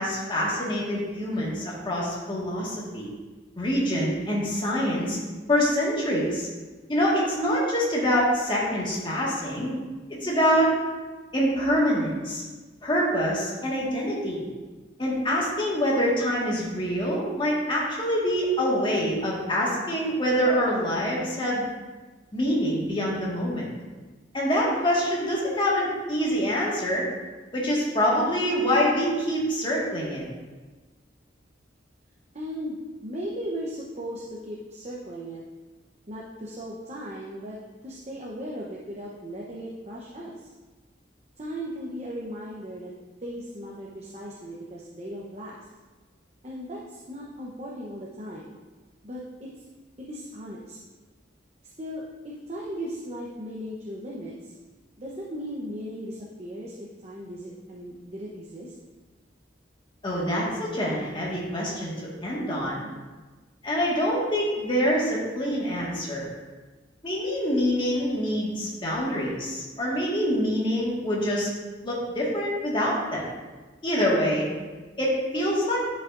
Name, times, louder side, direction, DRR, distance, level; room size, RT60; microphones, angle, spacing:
voice 1, 0.0-3.1 3.6-5.2 5.5-6.5 6.9-9.7 10.1-10.7 11.3-12.4 12.8-14.4 15.0-21.7 22.3-23.7 24.3-27.1 27.5-30.2 60.0-61.9 62.2-62.8 63.6-66.2 67.0-71.5 71.8-73.3 73.8-74.5 75.0-75.8, equal, 25° left, -5 dB, 1.7 m, -25 dB
voice 2, 32.3-32.8 33.0-35.4 36.1-40.5 41.4-42.9 43.2-45.7 46.4-48.6 49.0-49.6 50.0-50.8 51.8-54.5 55.0-58.7, equal, 35° right, -4 dB, 0.8 m, -37 dB
11.0 x 5.7 x 2.6 m, 1.3 s
head